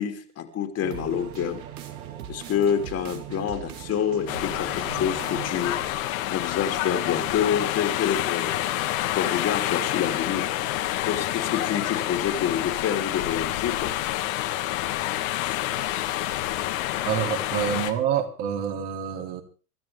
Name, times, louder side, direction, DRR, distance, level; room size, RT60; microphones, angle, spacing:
voice 1, 0.0-1.6 2.3-6.0 6.3-8.6 9.1-10.5 11.0-14.3 15.4-15.6, left 8 dB, 30° left, 5 dB, 3.1 m, -27 dB
sound 1, 0.8-5.9, right 10 dB, 65° right, 2.6 m, -39 dB
sound 2, 4.3-17.9, left 14 dB, 60° left, 2.2 m, -28 dB
voice 2, 17.1-19.4, right 9 dB, 50° right, 2 dB, 3.5 m, -27 dB
25.5 x 13.0 x 3.6 m, 0.36 s
hypercardioid pair, 100°, 46 cm